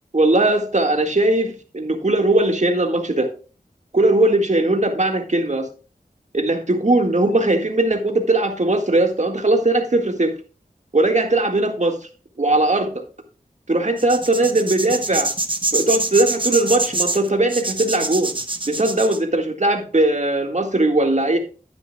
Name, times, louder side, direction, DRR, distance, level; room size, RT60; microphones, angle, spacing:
voice 1, 0.1-3.3 3.9-5.7 6.3-10.3 10.9-12.0 12.4-12.9 13.7-15.3 15.7-18.3 18.7-21.4, right 2 dB, 50° right, 4 dB, 1.8 m, -19 dB
sound 1, 14.0-19.2, right 2 dB, 35° right, 1.1 m, -25 dB
11.5 x 9.1 x 2.3 m, 0.36 s
wide cardioid pair, 45°, 15 cm